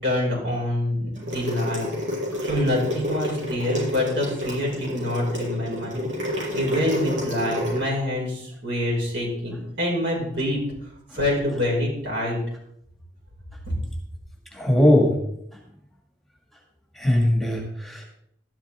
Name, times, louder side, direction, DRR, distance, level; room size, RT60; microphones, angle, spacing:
voice 1, 0.0-1.9 2.4-6.0 6.5-10.6 11.1-12.4, left 1 dB, 65° right, -3 dB, 5.8 m, -26 dB
sound 1, 1.2-7.8, left 1 dB, 80° right, 6.3 m, -29 dB
voice 2, 14.5-15.2 16.9-18.1, left 1 dB, ahead, -1 dB, 2.0 m, -20 dB
13.0 x 11.5 x 3.7 m, 0.73 s
head